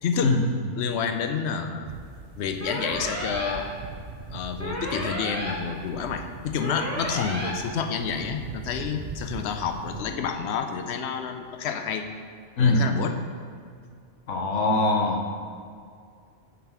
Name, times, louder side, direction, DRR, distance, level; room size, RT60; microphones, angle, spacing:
voice 1, 0.0-0.4 0.8-1.9 2.4-3.7 4.3-12.1 12.6-13.2, left 6 dB, 70° left, 6 dB, 0.9 m, -29 dB
sound 1, 1.8-10.0, right 4 dB, 55° right, 0.7 m, -41 dB
sound 2, 2.6-3.5 4.6-5.5 6.6-7.5, equal, 15° left, 1.3 m, -32 dB
voice 2, 14.3-15.2, left 3 dB, 85° left, 1 dB, 1.3 m, -22 dB
7.7 x 4.2 x 5.5 m, 2.2 s
omnidirectional pair, 1.2 m